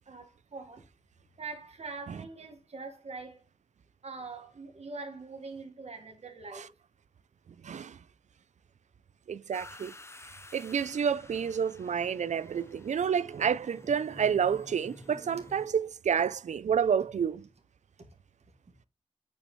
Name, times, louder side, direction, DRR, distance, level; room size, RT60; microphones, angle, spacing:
voice 1, 0.1-0.8 1.4-3.4 4.0-6.7, right 3 dB, 65° right, 1.6 m, -43 dB
voice 2, 7.6-8.0 9.3-9.9 10.5-17.5, right 7 dB, 85° right, 0.4 m, -29 dB
sound 1, 9.5-15.7, left 2 dB, 25° left, 0.6 m, -51 dB
8.7 x 5.5 x 3.0 m
wide cardioid pair, 85°, 12 cm